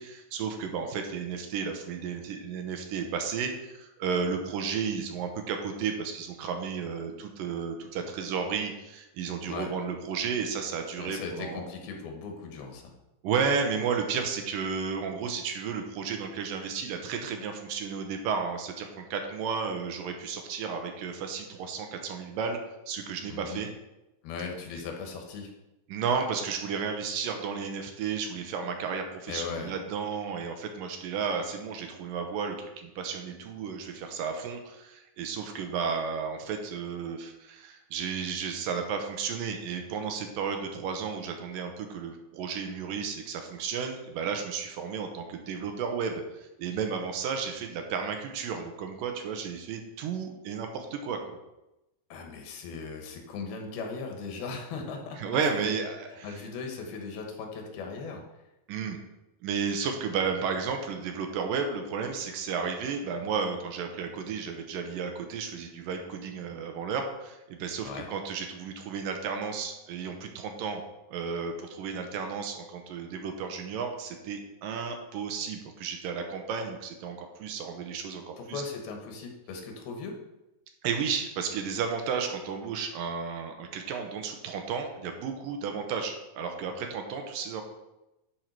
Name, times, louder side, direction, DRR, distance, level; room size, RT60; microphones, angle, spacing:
voice 1, 0.0-11.7 13.2-22.6 22.9-23.7 25.9-51.4 55.2-56.3 58.7-59.0 59.4-70.8 71.1-78.6 80.8-87.6, right 6 dB, 75° right, 4 dB, 2.4 m, -33 dB
voice 2, 11.0-12.9 23.3-23.6 24.2-25.5 29.3-29.7 52.1-55.2 55.7-55.8 56.2-58.2 67.8-68.1 78.4-80.2, left 4 dB, 85° left, 2 dB, 3.2 m, -38 dB
10.5 x 4.8 x 4.6 m, 0.95 s
omnidirectional pair, 4.4 m